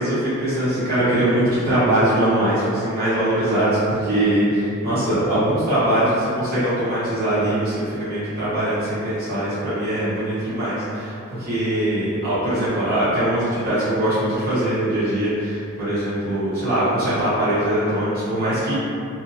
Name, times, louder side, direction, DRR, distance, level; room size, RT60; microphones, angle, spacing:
voice 1, 0.0-18.7, right 1 dB, 45° right, -14 dB, 1.0 m, -22 dB
2.7 x 2.6 x 2.6 m, 2.5 s
head